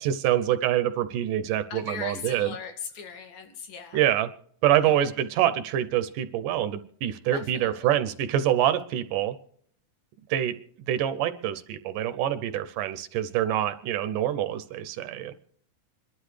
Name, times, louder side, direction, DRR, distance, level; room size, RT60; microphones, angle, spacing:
voice 1, 0.0-2.5 3.9-4.3 4.6-9.3 10.3-10.5 10.9-15.3, right 11 dB, 75° right, 12 dB, 2.1 m, -25 dB
voice 2, 1.7-4.1 4.8-5.1 7.3-8.0, left 6 dB, 85° left, 4 dB, 3.9 m, -39 dB
26.5 x 12.0 x 3.3 m, 0.63 s
omnidirectional pair, 4.1 m